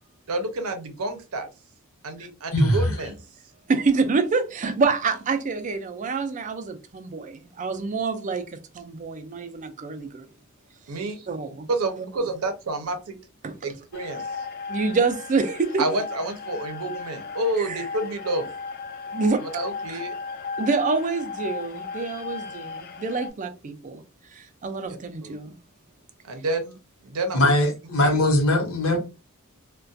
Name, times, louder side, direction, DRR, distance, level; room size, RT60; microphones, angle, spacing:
voice 1, 0.3-1.5 2.0-3.2 10.9-11.3 11.7-13.2 13.6-14.5 15.8-18.5 19.4-20.1 24.9-25.4 26.3-26.8 27.0-27.5 28.0-28.2, right 2 dB, 80° right, 0.6 m, -29 dB
voice 2, 2.5-2.9 27.3-29.0, left 1 dB, 70° left, 0.8 m, -20 dB
voice 3, 3.7-10.3 11.3-11.7 13.4-13.5 14.7-15.8 17.6-17.8 19.1-19.4 19.9-20.0 20.6-24.0 24.3-25.6, right 4 dB, 35° right, 0.3 m, -26 dB
sound 1, 13.9-23.3, left 5 dB, 45° left, 0.3 m, -36 dB
2.3 x 2.2 x 2.5 m
head